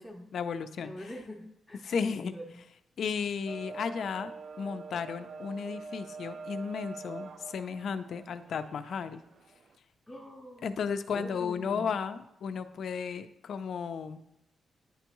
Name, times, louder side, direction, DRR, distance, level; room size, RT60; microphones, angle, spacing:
voice 1, 0.3-0.9 1.8-2.3 3.0-9.2 10.6-14.2, left 6 dB, 65° left, 10 dB, 0.4 m, -34 dB
voice 2, 0.8-2.6 10.1-10.8 11.1-11.9, equal, 5° left, -2 dB, 0.6 m, -44 dB
sound 1, 3.5-9.8, right 4 dB, 50° right, 0.3 m, -45 dB
9.8 x 3.4 x 3.0 m, 0.85 s
cardioid pair, 125°, 0 cm